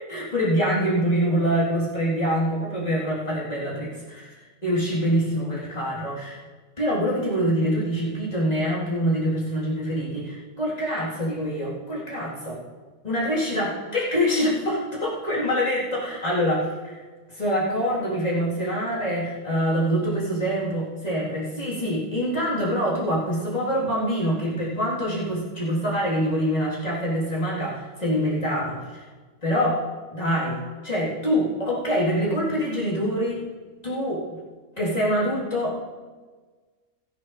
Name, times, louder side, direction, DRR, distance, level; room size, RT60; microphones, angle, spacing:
voice 1, 0.1-4.3 4.6-6.4 6.8-12.6 13.0-17.0 17.3-29.0 29.4-29.8 30.1-33.4 33.8-34.2 34.8-35.8, equal, 30° left, -7 dB, 3.8 m, -25 dB
17.5 x 13.0 x 3.3 m, 1.4 s
omnidirectional pair, 1.4 m